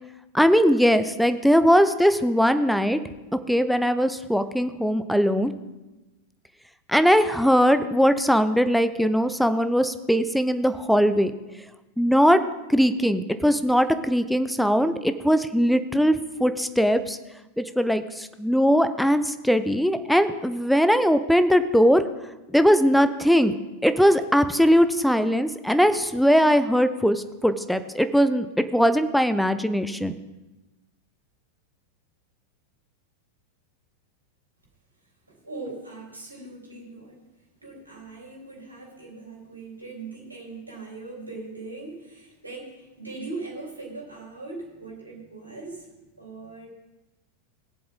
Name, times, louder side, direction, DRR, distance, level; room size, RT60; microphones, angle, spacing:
voice 1, 0.3-3.0 3.5-5.5 6.9-11.3 12.0-12.4 12.7-17.2 17.6-22.0 22.5-23.5 23.8-28.5 28.7-30.1, equal, ahead, 11 dB, 0.7 m, -20 dB
voice 2, 35.3-37.3 37.6-46.7, right 3 dB, 85° right, -2 dB, 3.6 m, -40 dB
21.0 x 7.9 x 3.6 m, 1.1 s
figure-of-eight pair, 90°, 0 cm